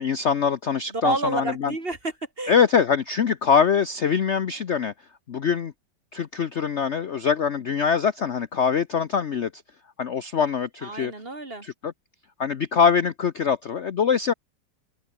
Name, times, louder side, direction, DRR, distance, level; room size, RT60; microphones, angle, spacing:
voice 1, 0.0-1.7 2.5-4.9 5.3-5.7 6.1-9.5 10.0-11.1 11.6-11.9 12.4-14.3, left 6 dB, 50° left, 1.0 m, -23 dB
voice 2, 0.9-2.5 10.8-11.7, right 2 dB, 30° right, 3.3 m, -29 dB
open air
omnidirectional pair, 2.0 m